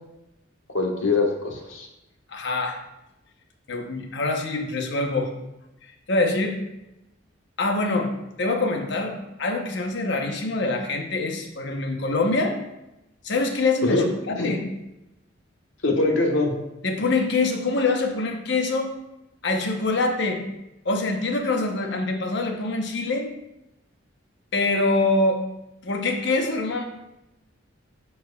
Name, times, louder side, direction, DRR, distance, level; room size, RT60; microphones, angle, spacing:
voice 1, 0.7-1.9 13.8-14.0 14.3-14.5 15.8-16.5, left 2 dB, 90° left, 1 dB, 1.3 m, -23 dB
voice 2, 2.3-2.8 3.7-5.3 6.1-6.6 7.6-8.1 8.4-12.6 13.2-14.6 16.8-19.0 19.4-20.4 20.8-23.3 24.5-25.4 25.8-26.8, left 3 dB, 65° left, 4 dB, 0.8 m, -24 dB
13.0 x 4.5 x 2.3 m, 0.91 s
head